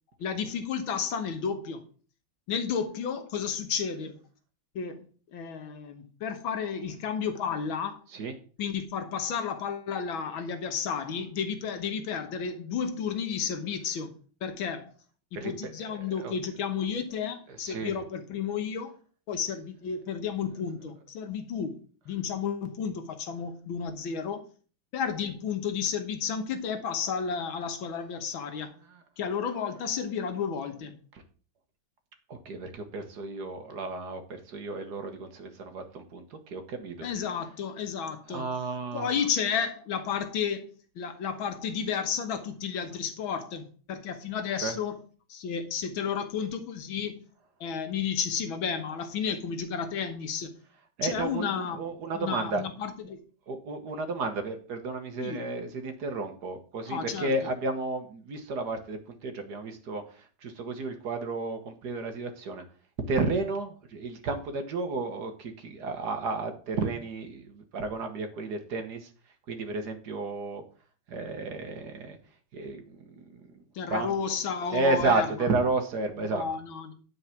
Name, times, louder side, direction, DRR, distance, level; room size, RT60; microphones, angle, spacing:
voice 1, 0.2-1.8 2.5-4.2 4.8-8.0 8.6-14.2 14.4-14.9 15.3-18.9 19.3-21.8 22.1-24.4 24.9-28.7 29.2-31.0 37.0-38.5 38.9-40.7 41.0-45.0 45.3-47.2 47.6-50.5 51.0-51.8 52.1-53.2 55.2-55.5 56.9-57.3 73.8-75.5 76.2-76.9, left 7 dB, 85° left, 2.0 m, -32 dB
voice 2, 15.9-16.3 17.6-17.9 32.3-37.1 38.3-39.1 44.6-44.8 51.0-52.6 53.5-62.6 63.1-69.1 69.5-70.6 71.1-72.2 72.5-73.0 73.3-73.4 73.9-74.1 74.7-76.4, right 3 dB, 55° right, 1.6 m, -32 dB
9.8 x 4.8 x 5.7 m
omnidirectional pair, 2.2 m